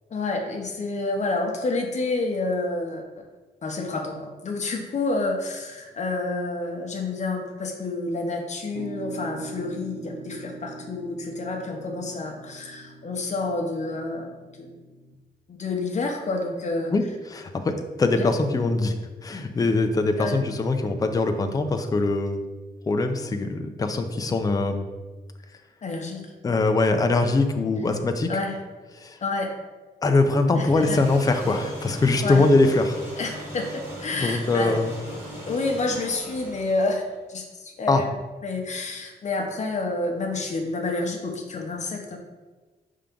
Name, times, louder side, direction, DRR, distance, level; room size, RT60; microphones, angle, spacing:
voice 1, 0.1-3.3 3.6-14.3 14.6-14.7 15.5-16.9 18.2-18.3 20.2-20.4 25.8-26.2 28.3-28.5 29.2-29.5 30.6-31.0 32.2-32.4 33.2-34.7 35.5-37.0 37.3-38.1 38.4-42.2, left 3 dB, 40° left, 2 dB, 0.9 m, -29 dB
sound 1, 8.7-15.2, right 3 dB, 60° right, 0.5 m, -41 dB
voice 2, 16.9-18.9 19.2-22.4 22.9-24.8 26.4-28.3 29.0-29.2 30.0-33.0 34.1-34.9 37.9-38.0, left 3 dB, 20° left, 6 dB, 0.5 m, -22 dB
sound 2, 30.7-37.2, equal, 15° right, 1.7 m, -38 dB
5.7 x 3.7 x 5.2 m, 1.3 s
wide cardioid pair, 165°, 17 cm